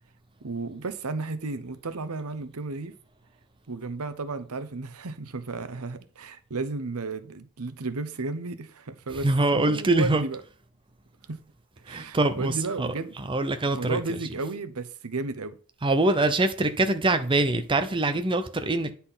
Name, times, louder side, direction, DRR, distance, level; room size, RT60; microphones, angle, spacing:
voice 1, 0.4-2.9 3.7-9.3 9.5-10.4 11.3-11.4 11.8-13.1 13.7-15.6, right 3 dB, 75° right, 0.9 m, -33 dB
voice 2, 9.2-10.2 11.9-12.9 13.2-14.0 15.8-18.9, right 2 dB, 25° right, 0.7 m, -24 dB
10.0 x 4.3 x 5.6 m
head